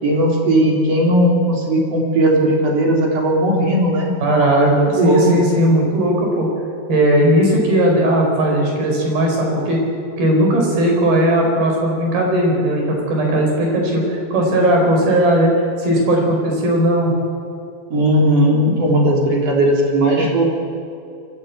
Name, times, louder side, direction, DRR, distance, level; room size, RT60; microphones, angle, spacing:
voice 1, 0.0-5.4 17.9-20.5, right 1 dB, 45° right, -1 dB, 4.5 m, -17 dB
voice 2, 4.2-6.5 6.9-9.8 10.2-17.1 20.2-20.3, right 1 dB, 75° right, 1 dB, 6.5 m, -17 dB
23.5 x 15.5 x 8.5 m, 2.6 s
omnidirectional pair, 4.4 m